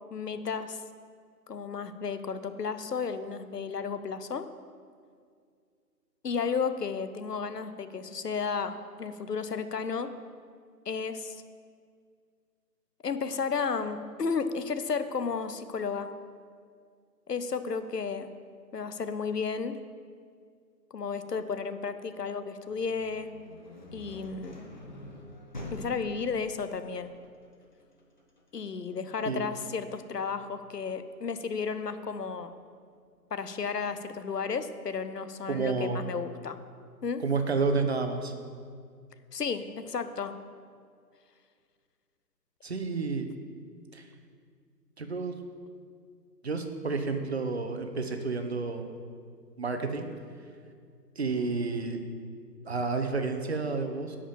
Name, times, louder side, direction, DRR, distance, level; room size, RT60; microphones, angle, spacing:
voice 1, 0.1-0.8 1.5-4.5 6.2-10.1 10.9-11.4 13.0-16.1 17.3-18.3 18.7-19.8 20.9-23.3 23.9-24.6 25.7-27.1 28.5-32.5 33.3-36.6 37.0-37.2 39.3-40.3, left 5 dB, 70° left, 11 dB, 0.8 m, -33 dB
sound 1, 22.7-32.4, left 1 dB, 30° left, 0.8 m, -47 dB
voice 2, 35.5-36.0 37.2-38.3 42.6-43.3 43.9-44.0 45.0-45.4 46.4-48.9 49.6-50.1 51.2-52.0 52.6-54.2, right 4 dB, 40° right, 6 dB, 0.9 m, -30 dB
10.5 x 5.0 x 7.2 m, 2.1 s
figure-of-eight pair, 150°, 50 cm